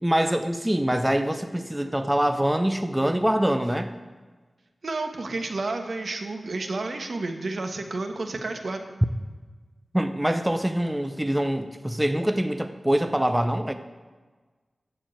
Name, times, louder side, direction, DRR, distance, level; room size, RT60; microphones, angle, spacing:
voice 1, 0.0-3.9 9.9-13.7, right 1 dB, 10° right, 8 dB, 0.6 m, -24 dB
voice 2, 4.8-8.8, right 3 dB, 70° right, 5 dB, 1.3 m, -31 dB
13.5 x 4.6 x 8.9 m, 1.3 s
wide cardioid pair, 95°, 0 cm